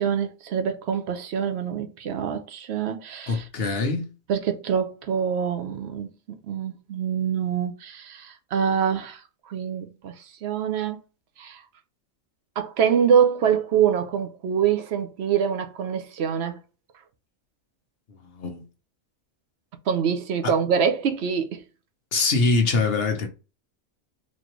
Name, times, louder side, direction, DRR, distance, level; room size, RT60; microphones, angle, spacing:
voice 1, 0.0-3.5 4.3-6.1 6.4-11.0 11.4-11.6 12.6-16.6 19.9-21.6, right 7 dB, 60° right, 0.8 m, -25 dB
voice 2, 3.3-4.1 18.2-18.6 22.1-23.3, left 3 dB, 50° left, 1.1 m, -23 dB
4.3 x 2.9 x 3.0 m
omnidirectional pair, 1.4 m